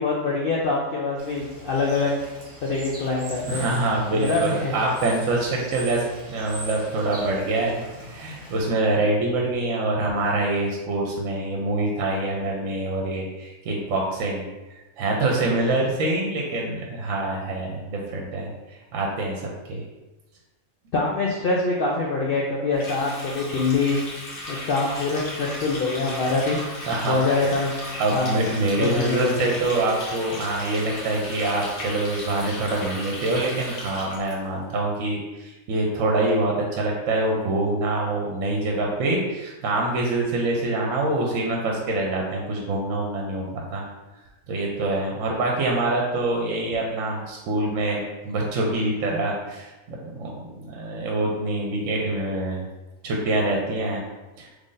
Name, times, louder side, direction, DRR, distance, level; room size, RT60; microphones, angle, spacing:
voice 1, 0.0-2.1 2.6-3.6 4.1-4.7 5.5-5.7 20.9-24.0 24.5-27.7 28.1-28.4 28.8-29.5, left 3 dB, 75° left, -3 dB, 0.5 m, -24 dB
Bird / Water, 1.2-8.6, right 1 dB, 45° right, 1.1 m, -41 dB
voice 2, 3.4-7.8 8.1-14.5 15.0-19.8 26.9-27.2 28.0-43.8 44.5-52.7 53.0-54.0 54.4-54.5, right 2 dB, 70° right, -1 dB, 0.9 m, -25 dB
Water tap faucet, 22.7-34.3, left 1 dB, 55° left, 1.2 m, -36 dB
3.1 x 2.5 x 3.8 m, 1.1 s
omnidirectional pair, 1.5 m